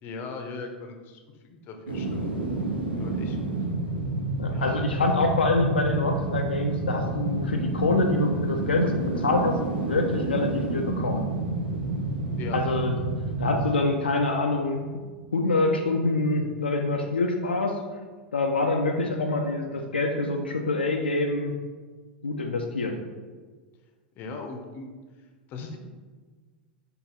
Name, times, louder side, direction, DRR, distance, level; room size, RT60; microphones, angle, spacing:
voice 1, 0.0-2.3 3.0-3.6 4.5-4.8 12.4-12.6 24.2-24.9 25.5-25.8, left 4 dB, 40° left, 4 dB, 0.7 m, -38 dB
sound 1, 1.9-14.9 15.3-15.4, right 2 dB, 85° right, 0.6 m, -30 dB
voice 2, 4.4-9.6 9.9-11.2 12.5-13.0 13.4-14.9 15.3-17.8 18.3-21.5 22.2-23.0, left 2 dB, 80° left, 2 dB, 0.4 m, -25 dB
4.8 x 2.6 x 3.8 m, 1.4 s
figure-of-eight pair, 90°, 5 cm